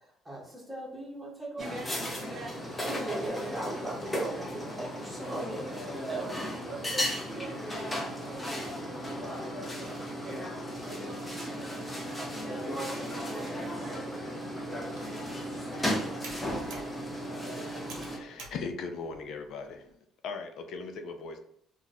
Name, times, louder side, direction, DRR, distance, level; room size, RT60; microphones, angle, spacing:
voice 1, 0.2-1.6 2.9-5.6 6.1-6.5, right 1 dB, 10° right, -4 dB, 0.9 m, -38 dB
sound 1, 1.6-18.2, equal, 10° left, 0.6 m, -35 dB
voice 2, 1.6-3.7 5.4-5.7 6.6-10.6 10.9-14.8 15.4-15.7, right 2 dB, 30° right, 1 dB, 0.6 m, -47 dB
Computer keyboard, 14.8-19.9, right 3 dB, 75° right, 1.0 m, -51 dB
voice 3, 17.9-19.8 20.2-21.4, left 4 dB, 55° left, 6 dB, 0.4 m, -39 dB
2.5 x 2.3 x 4.0 m, 0.73 s
cardioid pair, 150°, 0 cm